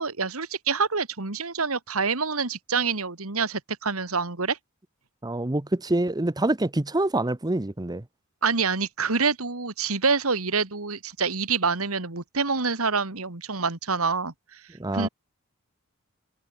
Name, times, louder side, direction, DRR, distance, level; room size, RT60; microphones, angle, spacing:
voice 1, 0.0-4.6 8.4-14.6 14.9-15.1, right 5 dB, 85° right, 2.3 m, -26 dB
voice 2, 5.2-8.0 14.8-15.1, right 2 dB, 20° right, 0.8 m, -26 dB
head